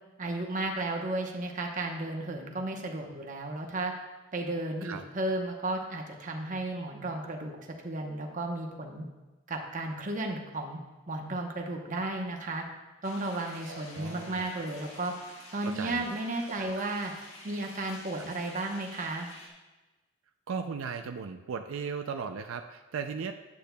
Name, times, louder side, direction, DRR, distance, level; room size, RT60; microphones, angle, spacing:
voice 1, 0.2-3.9 4.3-7.6 7.8-9.0 9.5-10.8 11.1-12.6 13.0-15.1 15.5-17.1 17.4-19.3, right 2 dB, 40° right, 1 dB, 0.9 m, -34 dB
sound 1, 13.0-19.5, left 1 dB, 85° left, 1.5 m, -50 dB
voice 2, 13.7-14.4 15.6-16.1 16.6-16.9 18.2-18.3 20.5-23.3, right 6 dB, 85° right, 6 dB, 0.4 m, -37 dB
10.0 x 8.3 x 2.3 m, 1.2 s
head